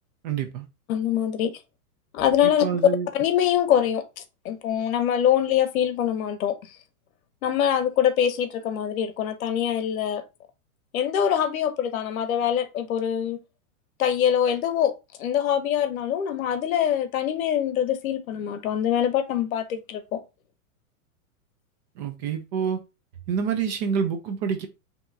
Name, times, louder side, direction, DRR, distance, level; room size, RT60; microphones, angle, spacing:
voice 1, 0.2-0.7 2.4-3.1 22.0-22.8 23.3-24.7, right 7 dB, 30° right, 0.5 m, -27 dB
voice 2, 0.9-1.5 2.1-2.6 3.1-4.0 4.4-6.6 7.4-10.2 10.9-13.4 14.0-14.9 15.2-20.2, left 9 dB, 65° left, 1.0 m, -24 dB
5.7 x 2.9 x 2.7 m
supercardioid pair, 150°, 44 cm